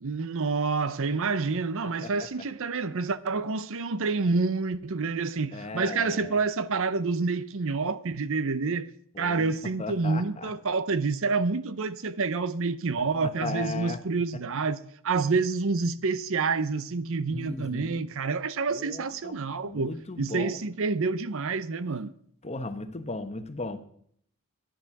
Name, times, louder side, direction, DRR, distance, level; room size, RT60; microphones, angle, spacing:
voice 1, 0.0-8.9 9.2-14.8 15.0-19.9 20.2-22.1, right 4 dB, 65° right, 0.7 m, -28 dB
voice 2, 1.8-2.3 5.5-6.4 9.1-10.5 13.4-14.0 17.3-18.0 18.7-20.6 22.4-23.8, left 3 dB, 30° left, 1.1 m, -37 dB
12.5 x 10.0 x 5.9 m
head